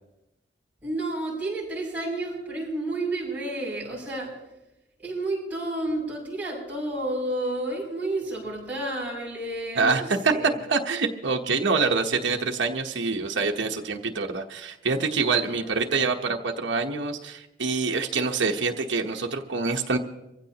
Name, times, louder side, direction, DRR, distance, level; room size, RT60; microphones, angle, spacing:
voice 1, 0.8-4.3 5.0-10.5 15.5-16.0, right 2 dB, 10° right, -6 dB, 6.9 m, -31 dB
voice 2, 9.7-10.3 10.7-20.0, right 4 dB, 80° right, 1 dB, 1.1 m, -26 dB
24.0 x 15.5 x 2.9 m, 0.96 s
head